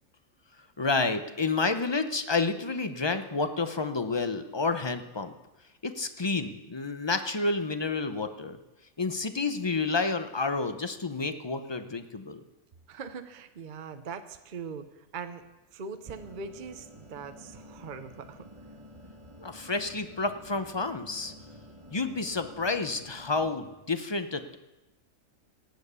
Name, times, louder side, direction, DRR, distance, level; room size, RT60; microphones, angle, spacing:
voice 1, 0.8-5.3 5.8-8.6 9.0-12.4 19.4-21.3 21.9-24.6, left 3 dB, 25° left, 9 dB, 0.6 m, -30 dB
voice 2, 12.9-15.4 15.7-18.4, right 5 dB, 45° right, 9 dB, 0.8 m, -41 dB
sound 1, 16.0-23.5, equal, 25° right, 1.2 m, -50 dB
17.5 x 8.0 x 6.9 m, 1.0 s
omnidirectional pair, 1.4 m